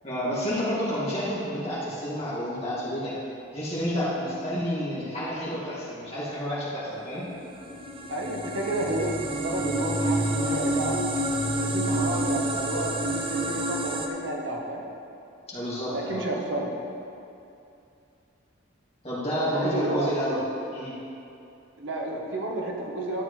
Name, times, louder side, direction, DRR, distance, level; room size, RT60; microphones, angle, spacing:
voice 1, 0.0-3.2 3.5-7.3 15.5-16.2 19.0-20.4 20.7-20.9, equal, 30° left, -9 dB, 2.3 m, -30 dB
sound 1, 7.3-14.1, right 1 dB, 25° right, 0.5 m, -28 dB
voice 2, 8.1-11.0 11.6-14.8 15.8-16.7 19.4-20.1 21.8-23.2, right 1 dB, 70° right, -1 dB, 1.2 m, -31 dB
12.5 x 7.7 x 3.2 m, 2.7 s
head